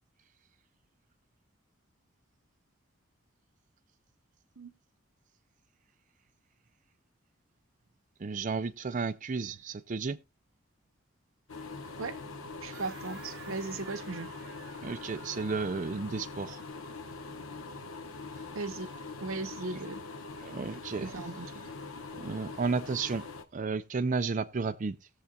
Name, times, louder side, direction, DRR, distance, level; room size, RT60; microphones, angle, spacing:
voice 1, 8.2-10.2 12.7-12.8 14.8-16.6 18.3-18.4 19.7-19.8 20.4-21.1 22.1-25.1, right 4 dB, 40° right, 0.5 m, -33 dB
sound 1, 11.5-23.4, left 3 dB, 85° left, 1.0 m, -43 dB
voice 2, 12.6-14.3 18.5-18.9 19.2-20.0 21.0-21.5, right 3 dB, 85° right, 0.8 m, -37 dB
sound 2, 12.7-17.1, right 6 dB, 55° right, 1.3 m, -53 dB
19.5 x 6.8 x 2.3 m
head